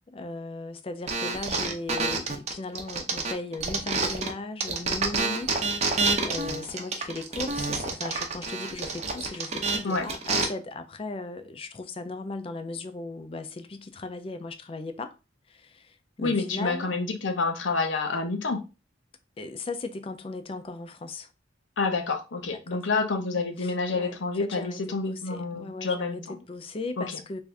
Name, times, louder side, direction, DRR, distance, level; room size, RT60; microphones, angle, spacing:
voice 1, 0.1-15.2 15.5-16.9 19.4-21.3 22.4-22.8 23.6-27.4, left 3 dB, 30° left, 0.4 m, -37 dB
sound 1, 1.1-4.3 4.6-10.4, right 4 dB, 35° right, 0.6 m, -28 dB
voice 2, 16.2-18.6 21.8-26.4 27.0-27.2, left 3 dB, 85° left, 0.7 m, -28 dB
3.5 x 2.5 x 3.2 m
head